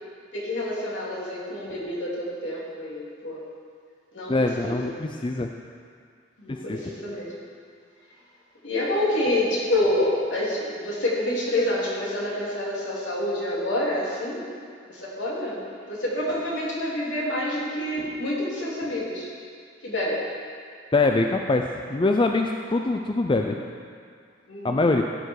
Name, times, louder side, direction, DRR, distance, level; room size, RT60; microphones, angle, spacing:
voice 1, 0.3-3.4 4.1-4.9 6.4-7.3 8.6-14.5 14.9-15.6 15.9-19.3 19.8-20.2 24.5-24.9, left 1 dB, 70° left, -6 dB, 3.5 m, -27 dB
voice 2, 4.3-5.5 6.5-6.8 20.9-23.6 24.6-25.0, left 2 dB, 25° left, 4 dB, 0.5 m, -23 dB
16.0 x 9.1 x 4.8 m, 2.2 s
head